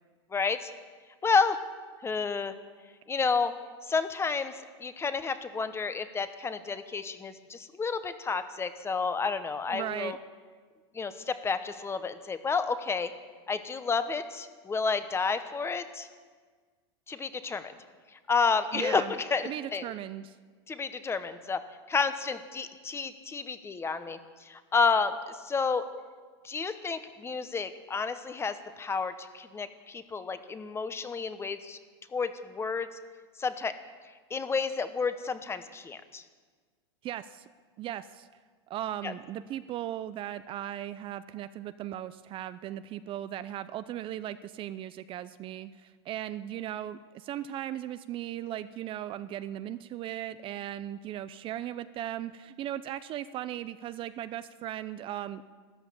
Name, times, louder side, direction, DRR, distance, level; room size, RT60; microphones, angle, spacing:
voice 1, 0.3-0.7 1.2-1.6 2.0-2.5 3.1-3.5 3.9-4.5 4.8-10.2 10.9-13.1 13.5-16.1 17.1-17.7 18.3-19.9 20.7-21.6 21.9-25.9 26.4-31.8 32.1-32.9 33.4-33.7 34.3-36.2 39.0-39.1, left 5 dB, 15° left, 11 dB, 1.1 m, -30 dB
voice 2, 9.7-10.2 18.7-19.1 19.4-20.4 37.0-37.4 37.8-38.3 38.7-55.4, right 12 dB, 40° right, 13 dB, 0.6 m, -37 dB
13.5 x 12.0 x 8.6 m, 1.5 s
hypercardioid pair, 115°, 14 cm